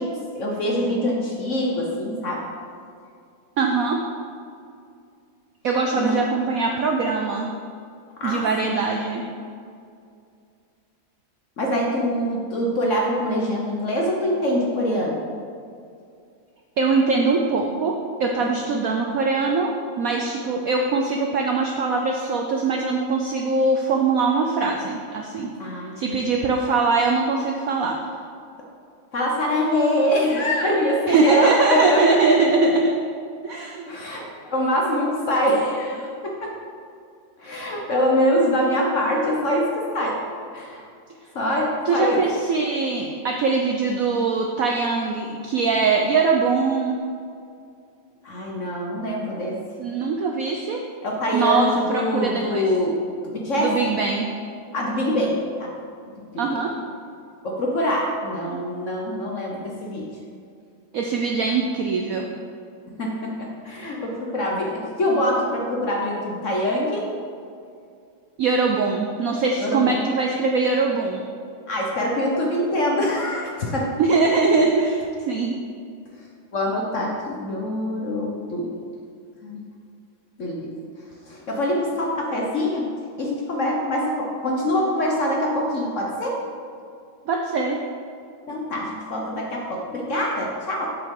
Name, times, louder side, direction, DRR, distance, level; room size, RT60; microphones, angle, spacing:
voice 1, 0.0-2.4 5.9-6.2 8.2-8.8 11.6-15.2 18.4-18.5 25.6-26.2 29.1-32.2 33.9-36.6 37.4-40.2 40.5-40.8 41.3-42.2 48.2-49.6 51.0-53.0 53.3-53.7 54.7-55.7 56.2-56.4 57.4-60.1 63.0-67.1 69.6-70.0 71.7-74.0 74.5-74.6 76.5-78.8 79.4-79.6 80.4-80.7 81.3-82.9 83.2-86.4 88.5-91.0, left 1 dB, 50° left, -2 dB, 1.0 m, -24 dB
voice 2, 3.6-4.0 5.6-7.5 8.2-9.2 16.8-25.5 26.0-28.0 31.1-33.0 33.4-33.8 41.9-47.0 49.8-50.8 51.3-52.7 53.6-54.3 56.4-56.7 58.4-58.6 60.9-62.3 68.4-71.2 74.0-75.5 87.3-87.8, right 4 dB, 70° right, 1 dB, 0.8 m, -22 dB
7.5 x 7.4 x 3.7 m, 2.4 s
omnidirectional pair, 2.1 m